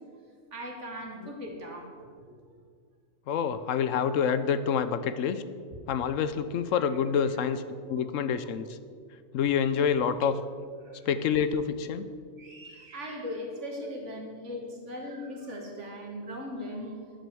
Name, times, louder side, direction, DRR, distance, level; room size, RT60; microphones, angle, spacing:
voice 1, 0.5-1.9 2.3-2.4 5.7-5.8 6.8-6.9 7.9-8.4 10.8-11.1 12.4-17.0, left 1 dB, 60° right, 1 dB, 2.2 m, -39 dB
voice 2, 3.3-5.4 5.9-7.6 7.9-8.8 9.3-10.4 11.1-12.1, left 7 dB, 75° left, 12 dB, 1.0 m, -27 dB
10.0 x 8.0 x 6.9 m, 2.1 s
omnidirectional pair, 1.4 m